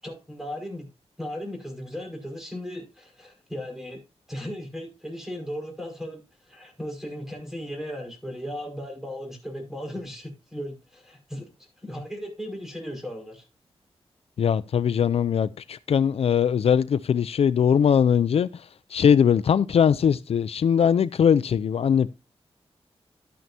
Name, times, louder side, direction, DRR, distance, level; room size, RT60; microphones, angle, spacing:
voice 1, 0.0-0.9 1.2-4.0 4.3-11.4 11.8-13.4, equal, 5° right, 5.2 m, -36 dB
voice 2, 14.4-18.5 18.9-22.1, left 7 dB, 70° left, 0.4 m, -21 dB
12.0 x 9.3 x 2.7 m
wide cardioid pair, 105°, 11 cm